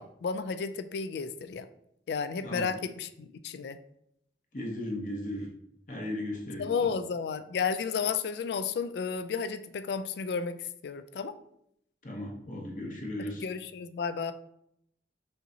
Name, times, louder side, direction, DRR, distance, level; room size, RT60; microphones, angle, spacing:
voice 1, 0.0-1.7 2.1-3.8 6.6-11.3 13.4-14.3, left 5 dB, 70° left, 11 dB, 0.3 m, -32 dB
voice 2, 4.5-5.5 5.9-6.9 12.0-13.4, left 1 dB, 45° left, -1 dB, 0.9 m, -36 dB
5.5 x 2.7 x 2.8 m, 0.73 s
head